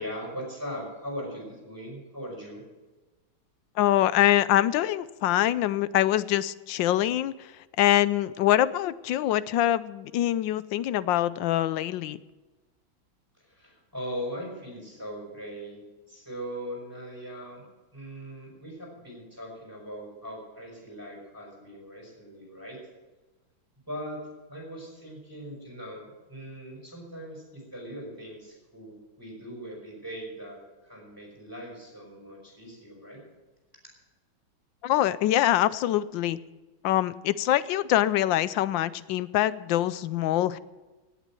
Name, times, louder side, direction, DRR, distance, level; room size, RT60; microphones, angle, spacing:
voice 1, 0.0-2.6 13.4-15.8 16.1-17.6 17.9-22.8 23.9-24.2 24.5-33.2, equal, 10° right, -3 dB, 5.8 m, -40 dB
voice 2, 3.8-7.5 7.8-12.2 34.8-36.4 36.8-40.6, left 13 dB, 75° left, 16 dB, 1.3 m, -24 dB
18.0 x 8.4 x 7.6 m, 1.2 s
omnidirectional pair, 2.2 m